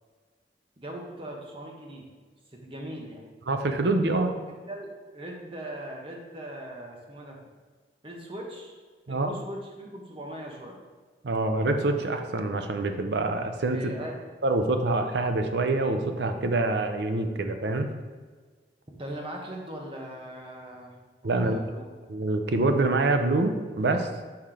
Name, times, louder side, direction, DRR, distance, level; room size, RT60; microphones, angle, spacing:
voice 1, 0.8-2.1 2.5-3.2 4.1-4.2 4.5-7.4 8.0-8.8 9.1-10.8 13.7-14.2 19.0-21.0 21.2-21.9, right 1 dB, 30° right, 0 dB, 1.0 m, -40 dB
voice 2, 3.5-4.3 9.1-9.3 11.2-13.8 14.4-17.9 21.2-21.6 22.1-24.1, right 2 dB, 75° right, 6 dB, 0.6 m, -25 dB
5.8 x 4.3 x 4.9 m, 1.5 s
head